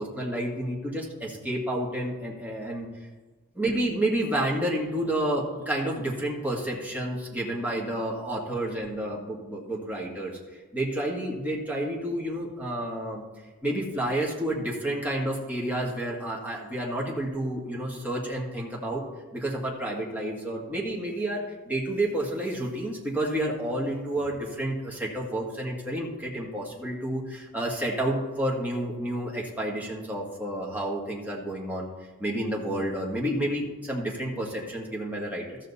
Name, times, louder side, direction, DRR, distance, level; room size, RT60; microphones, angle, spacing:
voice 1, 0.0-2.9 3.5-10.4 10.7-13.2 13.6-19.0 19.3-31.9 32.2-35.6, right 1 dB, 5° right, -4 dB, 1.7 m, -30 dB
14.0 x 6.4 x 4.2 m, 1.3 s
head